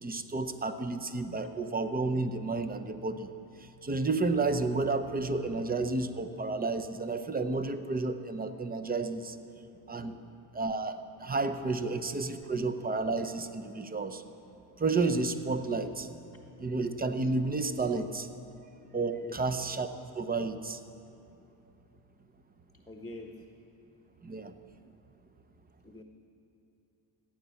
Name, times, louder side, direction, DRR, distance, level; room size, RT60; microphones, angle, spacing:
voice 1, 0.0-3.3 3.6-9.4 9.9-10.1 10.5-14.2 14.8-16.1 16.6-18.3 18.9-20.8 24.2-24.5, right 3 dB, 20° right, 10 dB, 0.8 m, -31 dB
voice 2, 22.9-23.4 25.8-26.0, left 2 dB, 5° left, 2 dB, 1.2 m, -45 dB
14.5 x 9.1 x 7.0 m, 2.8 s
supercardioid pair, 90°, 50 cm